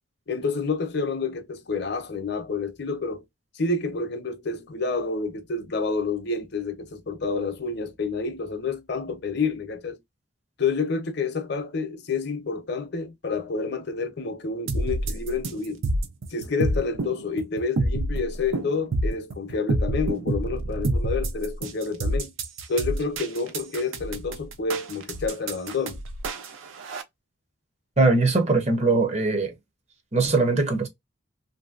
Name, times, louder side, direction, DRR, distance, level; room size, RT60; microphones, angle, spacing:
voice 1, 0.3-3.2 3.5-10.0 10.6-15.8 16.3-22.3 22.7-26.0, left 4 dB, 55° left, 0.6 m, -29 dB
sound 1, 14.7-27.0, right 2 dB, 85° right, 0.6 m, -28 dB
voice 2, 28.0-29.5 30.1-30.9, right 3 dB, 35° right, 0.6 m, -21 dB
3.0 x 2.6 x 2.4 m
head